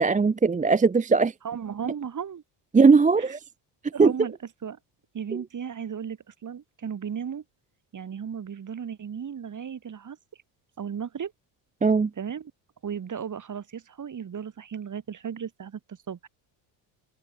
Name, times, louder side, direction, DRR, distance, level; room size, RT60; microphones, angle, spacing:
voice 1, 0.0-1.3 2.7-3.4 4.0-4.1 11.8-12.1, right 4 dB, 15° right, 0.7 m, -19 dB
voice 2, 1.4-2.4 3.2-3.3 3.9-4.4 4.6-4.8 5.1-7.4 7.9-10.2 10.8-11.3 12.2-12.5 12.8-16.3, right 7 dB, 40° right, 2.8 m, -35 dB
open air
supercardioid pair, 85°, 49 cm